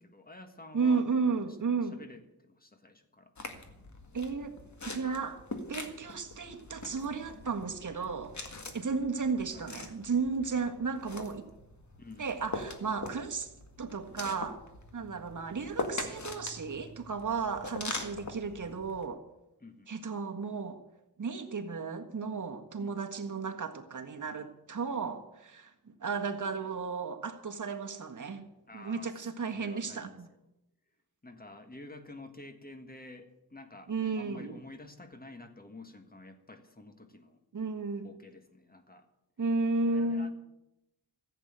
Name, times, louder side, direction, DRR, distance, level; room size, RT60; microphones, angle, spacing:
voice 1, 0.0-3.3 9.5-9.7 12.0-12.3 19.6-19.9 22.8-23.0 28.7-29.2 29.5-30.4 31.2-37.4 38.0-39.1 39.8-40.3, left 2 dB, 20° left, 7 dB, 1.6 m, -50 dB
voice 2, 0.7-2.0 4.1-4.5 4.8-5.4 5.7-8.4 8.7-11.5 12.2-13.5 13.8-14.6 14.9-19.2 19.9-20.8 21.2-28.4 28.7-30.3 33.9-34.6 37.5-38.1 39.4-40.3, right 4 dB, 50° right, 4 dB, 1.6 m, -33 dB
sound 1, 3.4-19.0, left 2 dB, 45° left, 1.9 m, -43 dB
15.0 x 8.1 x 9.1 m, 0.90 s
wide cardioid pair, 120°, 40 cm